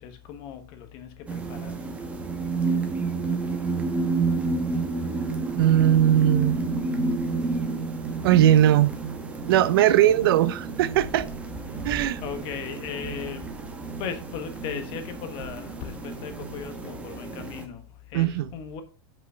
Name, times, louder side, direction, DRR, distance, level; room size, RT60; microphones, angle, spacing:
voice 1, 0.0-1.7 12.2-13.5 14.0-18.8, left 7 dB, 40° left, 1.3 m, -37 dB
sound 1, 1.3-17.7, right 3 dB, 10° right, 1.0 m, -30 dB
voice 2, 5.6-6.6 8.2-8.9 9.5-11.3 11.8-12.2 18.1-18.5, right 11 dB, 70° right, 0.6 m, -19 dB
6.0 x 5.4 x 5.5 m
supercardioid pair, 155°, 13 cm